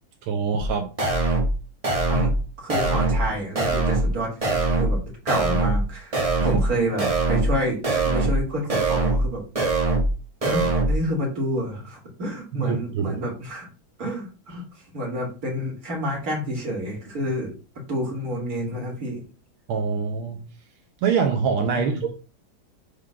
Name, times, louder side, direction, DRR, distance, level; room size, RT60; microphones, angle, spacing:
voice 1, 0.3-0.9 6.4-6.6 12.5-13.2 19.7-20.4 21.0-22.1, right 6 dB, 85° right, 1.7 m, -24 dB
sound 1, 0.6-0.7 1.0-1.6 1.8-2.4 2.7-3.3 3.6-4.1 4.4-5.0 5.3-5.8 6.1-6.7 7.0-7.6 7.8-8.4 8.7-9.3 9.6-10.1 10.4-11.0, right 2 dB, 25° right, 0.8 m, -22 dB
voice 2, 2.1-9.4 10.4-13.7 14.0-14.6 14.9-17.5 17.9-19.2 21.7-22.0, equal, 45° right, 2.5 m, -29 dB
5.0 x 3.7 x 5.7 m
omnidirectional pair, 2.2 m